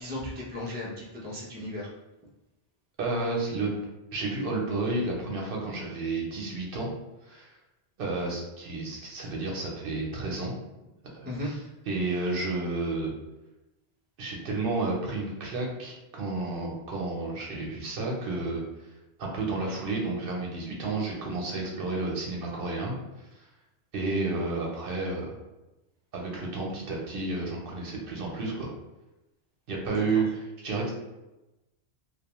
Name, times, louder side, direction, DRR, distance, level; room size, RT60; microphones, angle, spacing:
voice 1, 0.0-1.9 11.3-11.5 29.9-30.2, left 1 dB, 15° right, -5 dB, 0.4 m, -36 dB
voice 2, 3.0-3.7 4.1-6.9 7.3-7.5 8.0-10.5 11.1-13.1 14.2-18.9 19.2-22.9 23.3-23.4 23.9-25.4 26.1-28.7 29.7-30.9, right 3 dB, 65° right, -2 dB, 0.7 m, -31 dB
2.3 x 2.2 x 2.9 m, 1.0 s
omnidirectional pair, 1.1 m